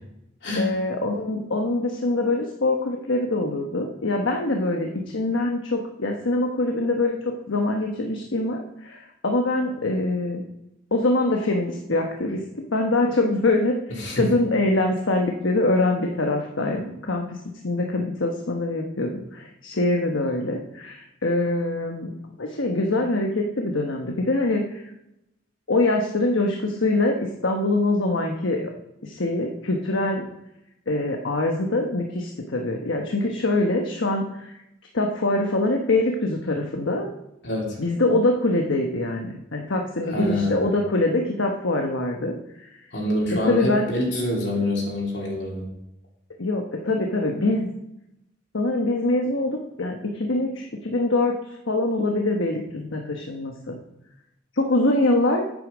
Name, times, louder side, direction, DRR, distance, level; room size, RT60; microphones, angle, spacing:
voice 1, 0.6-7.2 7.5-10.4 10.9-12.4 12.7-17.4 17.6-22.1 22.4-24.9 25.7-27.2 27.4-28.7 29.0-30.2 30.9-34.6 34.9-37.1 37.8-42.7 43.3-43.9 46.4-47.7 48.5-49.5 49.8-51.3 51.7-53.8 54.5-55.4, left 2 dB, 90° left, 2 dB, 1.1 m, -24 dB
voice 2, 37.4-37.8 40.0-40.7 42.9-45.6, left 1 dB, 60° left, -3 dB, 2.9 m, -26 dB
9.3 x 9.0 x 5.1 m, 0.85 s
head